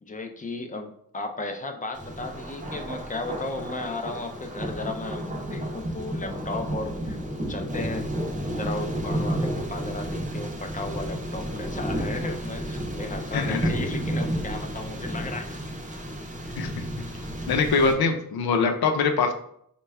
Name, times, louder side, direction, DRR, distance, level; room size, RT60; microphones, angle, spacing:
voice 1, 0.0-7.2 7.5-8.1 8.5-15.6, left 2 dB, 25° left, 5 dB, 0.4 m, -35 dB
Thunder, 1.9-17.9, equal, 20° right, 0.6 m, -31 dB
voice 2, 13.3-13.7 16.6-16.7 17.5-19.3, left 4 dB, 80° left, 5 dB, 0.6 m, -23 dB
4.2 x 2.2 x 3.4 m, 0.67 s
wide cardioid pair, 160°, 36 cm